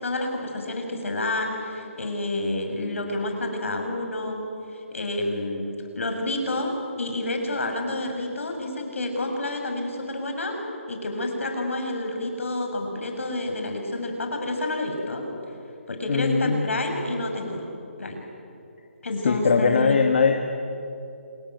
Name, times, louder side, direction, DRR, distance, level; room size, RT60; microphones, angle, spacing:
voice 1, 0.0-4.4 4.9-10.6 10.9-15.2 15.9-17.6 18.0-18.2 19.0-20.0, left 2 dB, 70° left, 3 dB, 7.0 m, -29 dB
voice 2, 16.1-16.7 19.2-20.3, left 5 dB, 45° left, 4 dB, 1.8 m, -21 dB
27.5 x 21.0 x 9.4 m, 2.7 s
hypercardioid pair, 165°, 7 cm